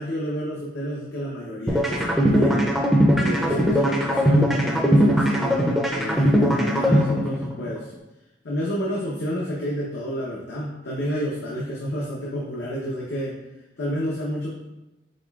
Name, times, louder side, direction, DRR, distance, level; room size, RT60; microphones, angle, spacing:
voice 1, 0.0-2.7 3.2-7.9 8.4-13.3 13.8-14.5, equal, 85° left, -4 dB, 0.7 m, -30 dB
sound 1, 1.7-7.7, equal, ahead, 0.4 m, -20 dB
5.1 x 4.0 x 2.3 m, 0.95 s
head